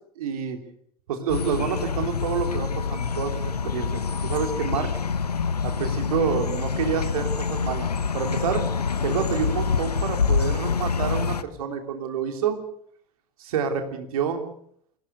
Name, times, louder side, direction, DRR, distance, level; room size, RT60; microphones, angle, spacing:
voice 1, 0.2-0.6 1.1-4.9 5.6-7.9 8.1-8.7 9.0-12.6 13.4-14.4, right 7 dB, 65° right, 6 dB, 3.3 m, -28 dB
sound 1, 1.3-11.4, left 5 dB, 85° left, 0.9 m, -26 dB
24.5 x 17.5 x 6.8 m, 0.66 s
figure-of-eight pair, 70°, 20 cm